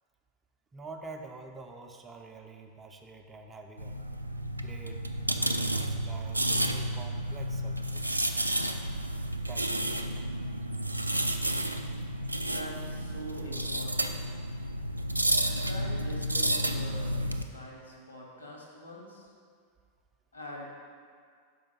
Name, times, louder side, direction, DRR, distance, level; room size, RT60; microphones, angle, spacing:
voice 1, 0.7-4.0 4.6-5.0 5.3-8.0 8.4-8.9 9.5-10.1, right 3 dB, 20° right, 3 dB, 0.5 m, -47 dB
metal polyhedron scrape, 3.8-17.4, right 1 dB, 85° right, 0.3 m, -31 dB
voice 2, 12.4-14.1 15.4-19.3 20.3-20.7, equal, 80° left, -2 dB, 1.6 m, -44 dB
5.6 x 5.1 x 5.5 m, 2.1 s
figure-of-eight pair, 90°, 0 cm